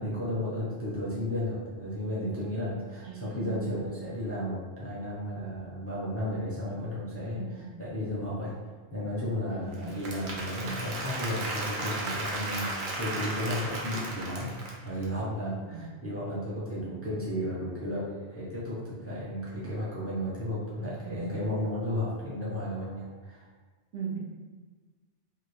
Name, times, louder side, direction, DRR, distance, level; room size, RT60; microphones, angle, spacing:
voice 1, 0.0-8.5 8.9-14.5 14.8-23.5, left 1 dB, 15° left, -8 dB, 0.5 m, -33 dB
voice 2, 3.0-4.1 7.2-7.8 9.5-9.9 15.6-15.9 16.9-17.0 21.0-21.4 23.9-24.2, right 6 dB, 85° right, -5 dB, 1.2 m, -39 dB
Applause / Crowd, 9.7-15.0, right 2 dB, 55° right, 0.6 m, -35 dB
2.9 x 2.3 x 3.2 m, 1.4 s
omnidirectional pair, 1.2 m